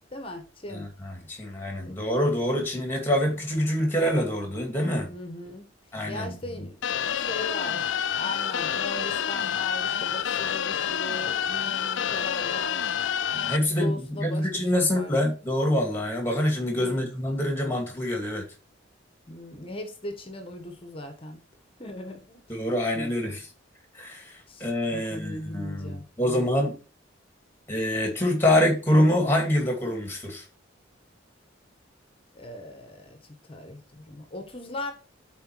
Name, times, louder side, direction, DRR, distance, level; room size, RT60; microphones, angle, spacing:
voice 1, 0.1-0.9 1.8-1.9 5.1-5.7 6.1-13.0 13.6-15.1 16.8-17.0 19.3-21.4 21.8-22.4 22.9-23.3 24.5-26.5 32.3-33.2 33.5-34.9, left 1 dB, 30° left, 1.2 m, -39 dB
voice 2, 0.7-5.1 5.9-6.6 13.3-18.4 22.5-23.4 23.9-26.7 27.7-30.4, left 1 dB, 10° left, 2.3 m, -26 dB
sound 1, 6.8-13.6, left 9 dB, 70° left, 0.5 m, -28 dB
8.0 x 4.4 x 4.6 m
head